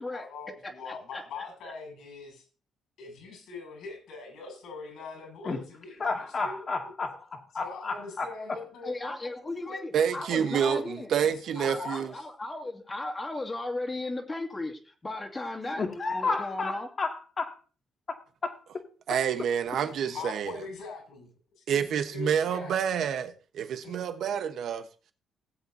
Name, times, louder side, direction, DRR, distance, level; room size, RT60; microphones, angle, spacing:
voice 1, 0.1-2.5 3.0-6.6 7.6-10.6 11.2-12.1 19.7-21.3 21.6-22.8 23.8-24.0, left 4 dB, 80° left, 7.3 m, -43 dB
voice 2, 0.6-1.2 8.8-11.1 11.6-16.9, left 2 dB, 25° left, 2.3 m, -36 dB
voice 3, 6.0-8.3 15.8-17.6 18.1-18.6, left 4 dB, 40° left, 2.3 m, -32 dB
voice 4, 9.9-12.1 19.1-20.5 21.7-24.9, right 8 dB, 70° right, 1.2 m, -28 dB
18.0 x 8.0 x 2.8 m
cardioid pair, 90°, 0 cm